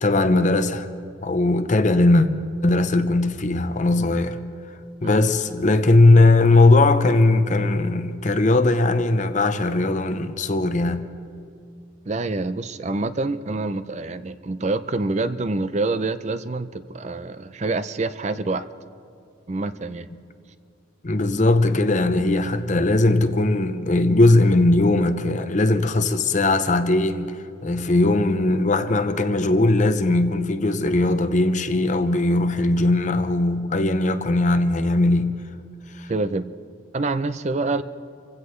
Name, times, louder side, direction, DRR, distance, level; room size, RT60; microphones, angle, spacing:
voice 1, 0.0-0.9 1.2-2.3 2.6-4.4 5.0-11.1 20.1-20.2 21.0-27.4 27.6-35.4 36.0-36.1, left 2 dB, 35° left, 0.7 m, -19 dB
voice 2, 12.1-18.7 19.5-20.1 36.1-36.5 36.9-37.8, right 3 dB, 35° right, 0.5 m, -26 dB
27.0 x 16.0 x 3.2 m
head